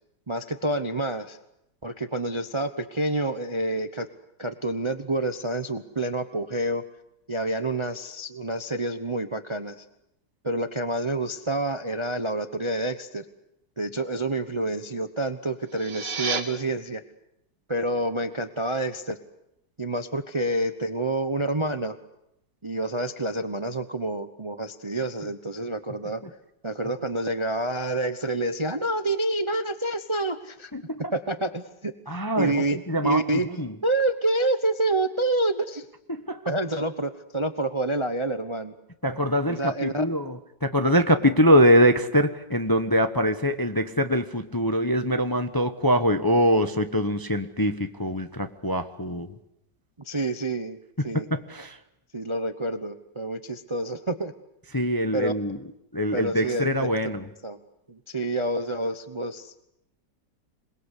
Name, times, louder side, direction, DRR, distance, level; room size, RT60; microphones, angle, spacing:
voice 1, 0.3-1.4 1.8-4.1 4.4-6.8 7.3-9.8 10.4-13.2 13.8-17.0 17.7-19.2 19.8-22.0 22.6-26.2 26.6-30.7 31.1-32.8 33.0-33.5 33.8-35.9 36.5-38.7 39.5-40.0 50.0-50.8 51.0-51.3 52.1-54.3 55.1-55.3 56.1-56.7 57.4-57.6 57.9-59.6, right 2 dB, 25° right, 0.7 m, -28 dB
sound 1, 15.6-16.4, right 5 dB, 75° right, 2.9 m, -30 dB
voice 2, 30.7-31.1 32.1-33.2 33.6-33.7 36.1-36.4 39.0-49.3 51.3-51.8 54.7-55.6 55.9-57.3, equal, 15° left, 0.8 m, -23 dB
27.0 x 21.0 x 8.2 m
omnidirectional pair, 1.9 m